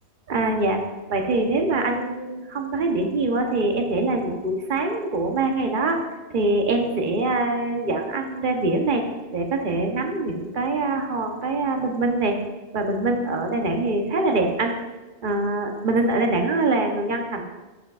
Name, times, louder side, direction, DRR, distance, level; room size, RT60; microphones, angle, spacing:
voice 1, 0.3-0.8 1.1-6.0 6.3-9.0 9.3-12.4 12.7-14.7 15.2-17.4, right 2 dB, 55° right, 3 dB, 1.0 m, -24 dB
8.9 x 7.2 x 2.4 m, 1.2 s
omnidirectional pair, 1.1 m